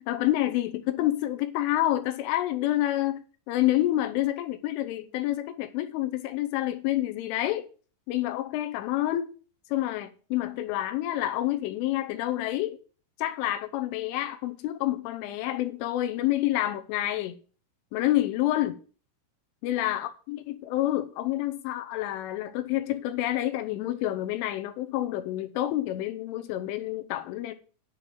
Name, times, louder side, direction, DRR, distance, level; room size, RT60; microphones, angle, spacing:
voice 1, 0.1-7.7 8.1-9.3 9.7-12.8 13.2-17.4 17.9-18.8 19.6-27.5, left 14 dB, 85° left, 3.3 m, -28 dB
10.5 x 4.6 x 7.8 m
omnidirectional pair, 5.6 m